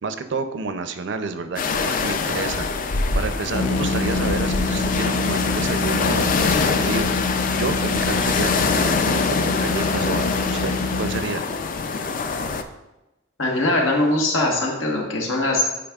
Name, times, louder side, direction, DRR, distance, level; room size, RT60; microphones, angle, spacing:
voice 1, 0.0-2.7 3.1-7.1 7.6-11.4, right 4 dB, 60° right, 9 dB, 0.5 m, -29 dB
sound 1, 1.6-12.6, left 4 dB, 45° left, 0.4 m, -24 dB
sound 2, 3.5-11.2, left 3 dB, 65° left, 0.7 m, -26 dB
voice 2, 13.4-15.6, left 2 dB, 85° left, -1 dB, 1.4 m, -21 dB
8.6 x 4.9 x 2.4 m, 0.97 s
head